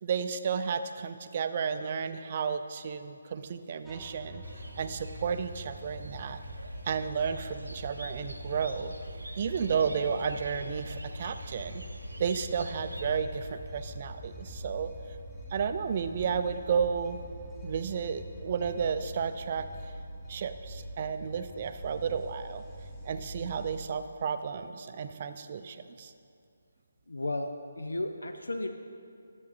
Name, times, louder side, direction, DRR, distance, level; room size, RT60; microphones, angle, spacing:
voice 1, 0.0-4.4 4.8-6.4 6.9-8.9 9.4-11.8 12.2-14.9 15.5-17.2 17.6-19.7 20.3-22.6 23.0-26.1, right 6 dB, 35° right, 10 dB, 0.4 m, -32 dB
sound 1, 3.8-23.8, equal, 5° left, 1.4 m, -43 dB
sound 2, 4.4-13.2, right 1 dB, 80° right, 0.7 m, -48 dB
voice 2, 27.1-28.7, left 2 dB, 75° left, 6 dB, 0.5 m, -34 dB
11.0 x 7.3 x 4.1 m, 2.4 s
figure-of-eight pair, 145°, 0 cm